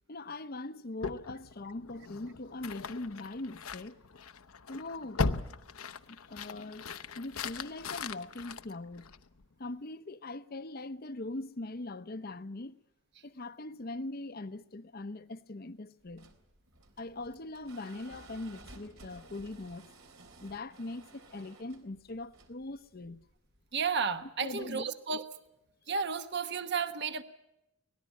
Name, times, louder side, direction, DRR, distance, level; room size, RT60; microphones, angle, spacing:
voice 1, 0.1-4.2 4.7-5.3 6.1-9.1 9.6-12.8 13.2-16.3 17.0-19.9 20.4-23.2 24.2-24.9, left 2 dB, 45° left, 0.8 m, -41 dB
sound 1, 1.0-9.5, left 4 dB, 85° left, 0.9 m, -39 dB
sound 2, 16.0-23.9, right 2 dB, 75° right, 3.5 m, -56 dB
voice 2, 23.7-25.2 25.9-27.2, right 5 dB, 55° right, 1.2 m, -32 dB
25.0 x 18.5 x 8.4 m
head